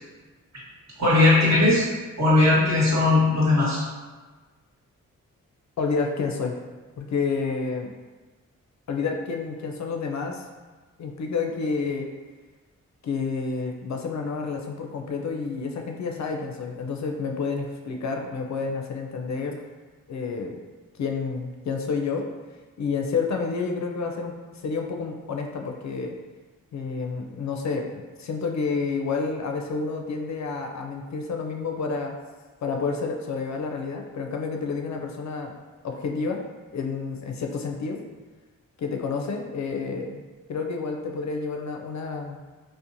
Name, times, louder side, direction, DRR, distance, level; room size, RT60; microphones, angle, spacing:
voice 1, 1.0-1.9 2.2-3.8, left 2 dB, 50° right, -7 dB, 1.2 m, -18 dB
voice 2, 5.8-6.5 7.0-7.9 8.9-10.4 11.0-12.1 13.0-19.6 20.1-20.6 21.0-22.3 22.8-24.3 24.6-26.1 26.7-32.2 32.6-35.5 35.8-36.4 36.7-38.0 38.8-40.2 40.5-42.4, left 4 dB, 55° left, 2 dB, 0.4 m, -29 dB
2.9 x 2.1 x 2.5 m, 1.3 s
supercardioid pair, 40°, 34 cm